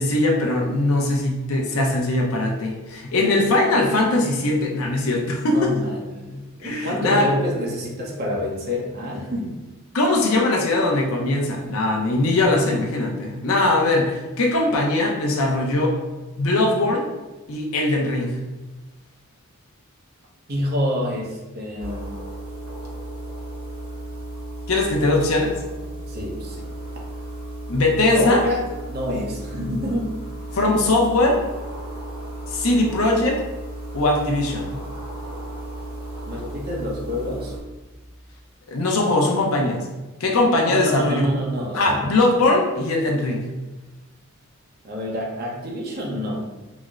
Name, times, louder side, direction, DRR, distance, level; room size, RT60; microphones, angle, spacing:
voice 1, 0.0-5.7 6.6-7.3 9.9-16.0 16.4-17.1 17.5-18.4 24.7-25.5 27.7-28.4 30.5-31.4 32.5-33.4 33.9-34.7 38.7-39.9 40.2-41.2 41.7-43.4, left 2 dB, 75° left, 0 dB, 0.6 m, -20 dB
voice 2, 3.2-3.5 5.5-9.6 20.5-22.1 26.1-26.7 28.1-28.6 28.9-30.1 36.3-37.5 40.6-42.0 44.8-46.5, left 1 dB, 45° right, -2 dB, 0.7 m, -27 dB
sound 1, 21.8-37.6, right 1 dB, 85° right, 1.1 m, -34 dB
4.1 x 2.0 x 2.4 m, 1.1 s
head